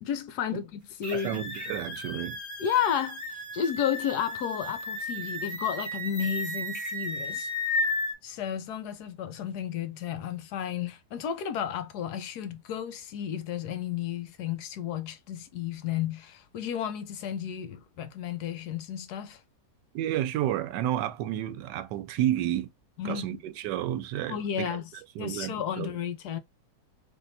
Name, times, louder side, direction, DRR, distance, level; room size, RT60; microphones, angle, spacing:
voice 1, 0.0-1.4 2.6-3.2 3.5-7.5 8.2-19.4 23.0-23.4 24.3-24.8 25.2-26.4, left 9 dB, 70° left, 1.1 m, -32 dB
sound 1, 1.0-8.1, left 1 dB, 10° left, 0.9 m, -34 dB
voice 2, 1.1-2.4 19.9-22.7 23.0-24.8 25.1-26.0, right 12 dB, 85° right, 1.2 m, -31 dB
3.5 x 2.8 x 2.6 m
omnidirectional pair, 1.8 m